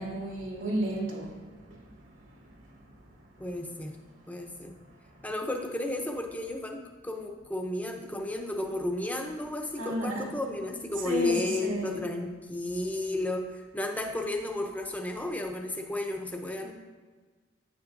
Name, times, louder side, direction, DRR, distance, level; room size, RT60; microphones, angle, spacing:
voice 1, 0.0-1.3 1.7-1.8 9.8-10.3 11.0-11.9, right 1 dB, 80° right, 2.5 m, -32 dB
voice 2, 3.4-4.0 4.3-4.8 5.2-16.7, left 2 dB, 10° left, 0.7 m, -33 dB
9.3 x 9.0 x 2.5 m
head